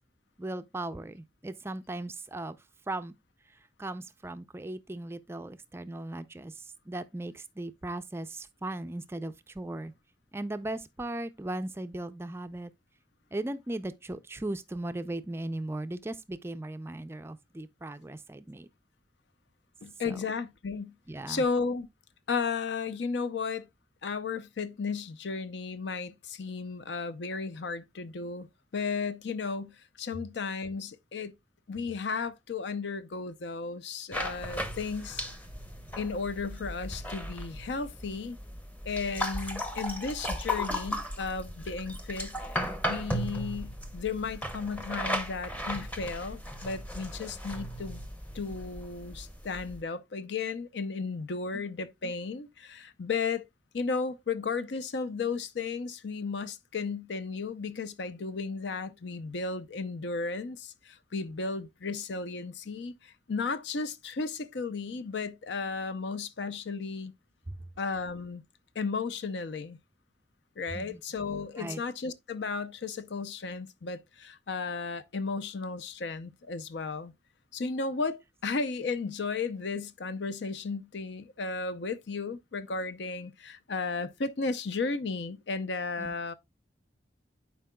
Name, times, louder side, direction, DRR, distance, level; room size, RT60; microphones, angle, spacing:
voice 1, 0.4-2.6 2.9-3.2 3.5-9.9 10.3-12.7 13.3-18.7 20.1-20.2 21.1-21.4 51.5-51.6 67.5-67.6 70.7-71.0 71.6-71.8 86.0-86.1, right 1 dB, 15° right, 0.3 m, -37 dB
voice 2, 19.8-20.9 21.3-21.9 22.3-23.7 24.0-28.5 28.7-31.3 31.7-35.2 36.0-38.4 38.9-48.0 48.3-53.5 53.7-67.1 67.8-68.4 68.7-69.8 70.6-77.1 77.5-86.3, left 4 dB, 75° left, 0.6 m, -34 dB
sound 1, 34.1-49.8, equal, 10° left, 0.7 m, -36 dB
11.0 x 4.6 x 2.2 m
head